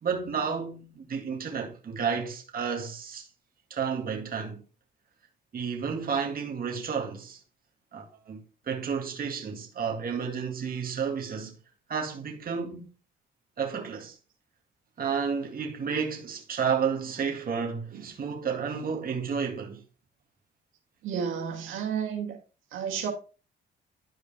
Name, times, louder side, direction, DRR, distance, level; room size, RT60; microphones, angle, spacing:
voice 1, 0.0-3.3 3.7-4.6 5.5-7.4 7.9-11.5 11.9-12.9 13.6-14.2 15.0-19.8, right 6 dB, 45° right, 2.1 m, -31 dB
voice 2, 21.0-22.4 22.7-23.1, right 7 dB, 85° right, 2.1 m, -31 dB
11.0 x 4.9 x 3.4 m
cardioid pair, 90°, 20 cm